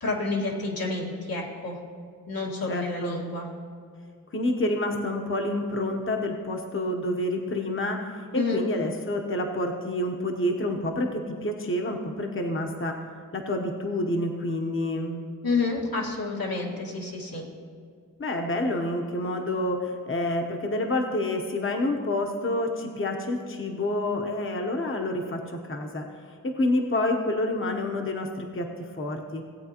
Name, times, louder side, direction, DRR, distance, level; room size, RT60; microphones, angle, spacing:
voice 1, 0.0-1.8 2.3-3.5 8.3-8.7 15.4-17.5, left 3 dB, 90° left, -3 dB, 1.8 m, -29 dB
voice 2, 2.7-3.3 4.3-13.0 13.3-15.2 18.2-26.1 26.4-29.4, left 1 dB, 35° left, 3 dB, 0.9 m, -28 dB
17.0 x 8.6 x 2.9 m, 2.2 s
wide cardioid pair, 85°, 35 cm